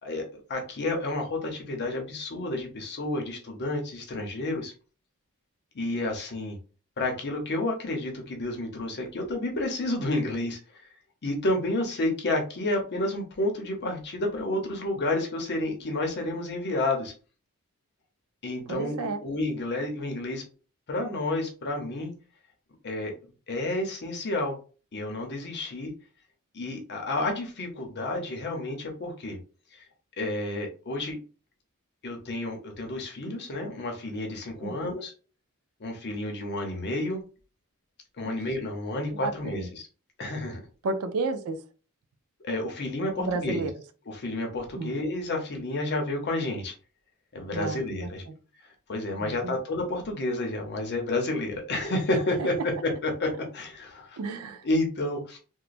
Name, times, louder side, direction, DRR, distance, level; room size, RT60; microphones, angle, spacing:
voice 1, 0.0-4.7 5.7-6.6 7.0-10.6 11.2-17.1 18.4-20.4 20.9-22.1 22.8-23.1 23.5-24.6 24.9-25.9 26.5-29.4 30.2-31.2 32.0-35.1 35.8-37.2 38.2-39.8 40.2-40.6 42.4-43.7 44.1-46.7 47.3-48.2 48.9-52.6 52.8-54.2 54.6-55.4, left 2 dB, 50° left, 3 dB, 0.7 m, -30 dB
voice 2, 18.7-19.2 34.6-35.0 38.2-38.4 39.2-39.7 40.8-41.6 43.2-43.7 44.7-44.9 47.5-48.4 49.2-49.6 54.2-54.7, right 3 dB, 70° right, 9 dB, 0.4 m, -32 dB
3.0 x 2.1 x 2.5 m, 0.36 s
head